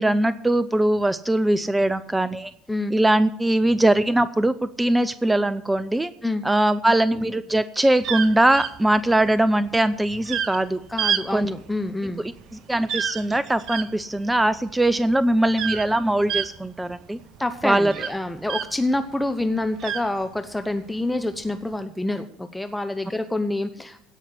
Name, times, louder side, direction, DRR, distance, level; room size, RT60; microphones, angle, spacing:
voice 1, 0.0-2.5 2.9-6.1 6.4-10.8 11.3-11.5 12.2-17.2 17.6-17.9, right 1 dB, 10° right, 15 dB, 0.6 m, -21 dB
sound 1, 8.0-19.0 19.3-20.7 21.4-21.7, right 8 dB, 55° right, 0.9 m, -30 dB
voice 2, 10.9-12.2 17.4-24.0, left 2 dB, 5° left, 8 dB, 1.0 m, -27 dB
16.5 x 5.7 x 8.1 m, 0.72 s
figure-of-eight pair, 65°, 0 cm